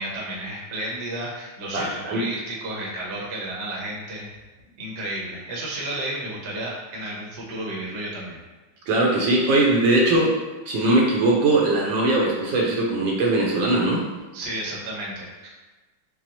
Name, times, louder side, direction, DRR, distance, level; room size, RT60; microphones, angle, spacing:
voice 1, 0.0-4.3 4.8-8.4 14.3-15.5, right 1 dB, 50° right, -4 dB, 0.9 m, -32 dB
voice 2, 1.7-2.2 8.9-10.4 10.7-14.0, right 2 dB, 75° right, -2 dB, 1.4 m, -20 dB
6.1 x 2.0 x 2.9 m, 1.2 s
omnidirectional pair, 2.2 m